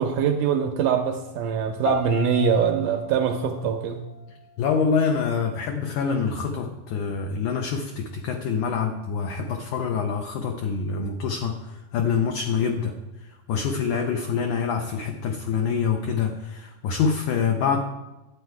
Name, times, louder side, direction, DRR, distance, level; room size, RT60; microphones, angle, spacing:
voice 1, 0.0-4.1, right 7 dB, 80° right, 5 dB, 1.8 m, -23 dB
sound 1, 1.9-4.8, left 4 dB, 65° left, 2.0 m, -35 dB
voice 2, 4.6-17.8, left 6 dB, 85° left, 4 dB, 1.7 m, -26 dB
11.5 x 8.3 x 4.6 m, 1.1 s
omnidirectional pair, 4.4 m